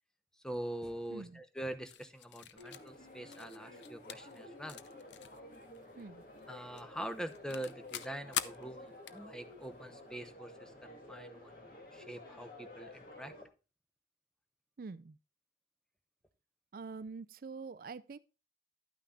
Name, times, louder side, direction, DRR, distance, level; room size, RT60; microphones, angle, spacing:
voice 1, 0.4-4.8 6.5-11.6 11.9-13.3, right 1 dB, 5° left, 0.8 m, -44 dB
voice 2, 1.1-1.4 6.0-6.2 14.8-15.2 16.7-18.2, right 4 dB, 50° right, 0.4 m, -45 dB
sound 1, 1.9-6.5 6.7-10.0, left 10 dB, 85° left, 0.6 m, -45 dB
sound 2, 2.5-13.4, left 1 dB, 50° left, 2.6 m, -52 dB
11.5 x 9.1 x 2.4 m
head